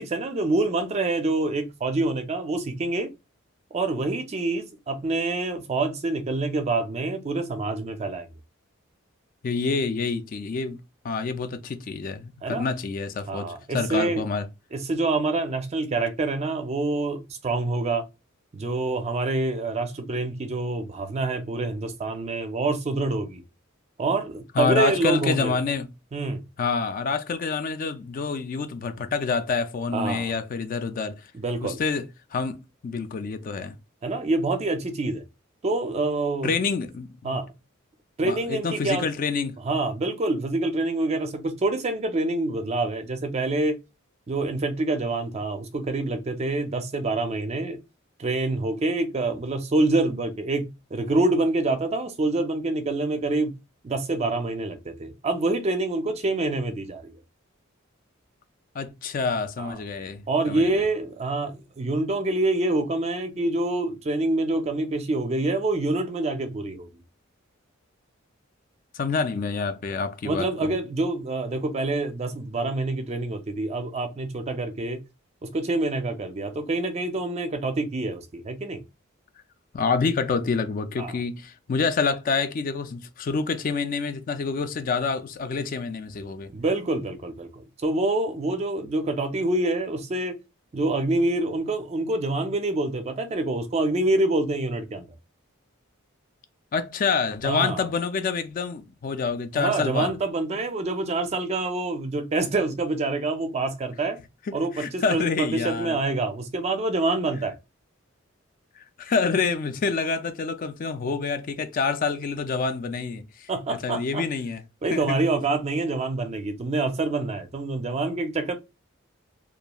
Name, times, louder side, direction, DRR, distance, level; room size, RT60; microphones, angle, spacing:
voice 1, 0.0-3.1 3.7-8.3 12.4-12.7 13.3-14.2 14.7-18.0 18.5-23.4 24.0-25.6 26.1-26.4 29.9-30.3 31.3-31.8 34.0-35.2 35.6-36.5 37.2-37.5 38.2-39.1 39.6-43.8 44.3-47.8 48.2-53.6 53.8-57.2 59.6-59.8 60.3-66.9 70.2-75.0 75.4-78.8 81.0-81.2 86.5-90.4 90.7-95.1 97.4-97.9 99.5-104.2 104.5-107.6 113.5-114.2 114.8-118.5, right 2 dB, 30° right, 0.4 m, -26 dB
voice 2, 9.4-10.8 11.0-14.5 24.6-25.9 26.6-31.2 31.6-32.0 32.3-33.8 36.4-37.4 38.2-39.6 58.8-60.8 68.9-70.7 79.7-86.5 96.7-100.1 104.5-106.0 109.0-113.5 113.8-114.6 114.9-115.2, left 4 dB, 40° left, 0.3 m, -27 dB
2.9 x 2.3 x 2.2 m
head